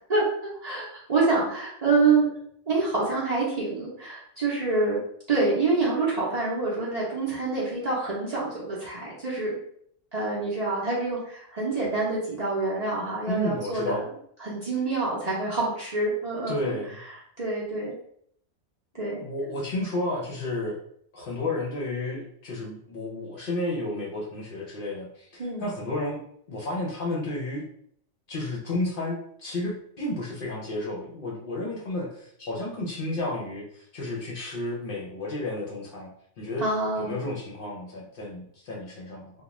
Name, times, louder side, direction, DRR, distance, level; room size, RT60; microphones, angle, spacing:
voice 1, 0.1-2.3 2.7-5.0 5.3-9.6 10.1-14.0 14.4-17.9 18.9-19.2 25.4-25.7 36.6-37.2, right 3 dB, 45° right, -7 dB, 0.6 m, -27 dB
voice 2, 13.3-14.0 16.5-17.0 19.2-20.8 21.1-26.2 26.5-27.6 28.3-36.1 36.4-36.6 37.0-39.3, left 2 dB, 55° left, -4 dB, 0.7 m, -32 dB
2.4 x 2.2 x 3.0 m, 0.67 s
omnidirectional pair, 1.2 m